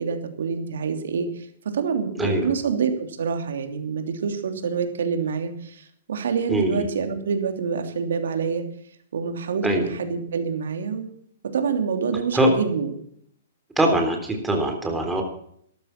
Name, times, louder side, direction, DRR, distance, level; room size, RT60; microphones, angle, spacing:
voice 1, 0.0-1.5 1.7-8.6 9.1-11.1 11.5-12.9, right 6 dB, 80° right, 6 dB, 3.0 m, -26 dB
voice 2, 2.2-2.5 6.5-6.8 9.6-9.9 12.3-12.5 13.8-15.2, right 1 dB, 5° right, 2 dB, 3.6 m, -22 dB
13.0 x 12.5 x 6.0 m, 0.66 s
hypercardioid pair, 140°, 0 cm